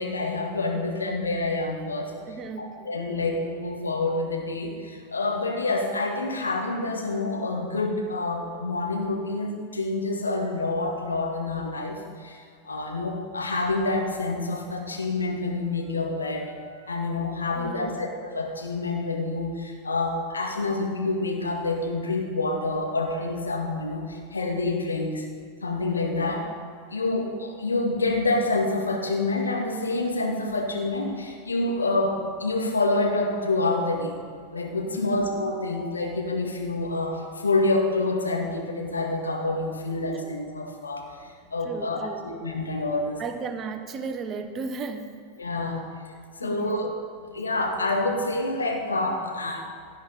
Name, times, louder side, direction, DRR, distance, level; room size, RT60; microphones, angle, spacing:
voice 1, 0.0-2.1 2.6-16.5 16.9-25.2 25.6-26.5 26.9-34.1 34.5-41.1 41.5-42.0 42.2-43.2 45.4-45.8 46.4-46.9 47.3-49.7, left 2 dB, 75° left, 2 dB, 2.0 m, -27 dB
voice 2, 2.3-3.0 16.7-17.0 17.5-18.0 34.8-35.2 40.2-40.3 41.6-42.3 43.2-45.2 46.4-46.7, right 4 dB, 30° right, 7 dB, 1.1 m, -35 dB
17.0 x 11.0 x 3.9 m, 2.2 s
figure-of-eight pair, 90°, 0 cm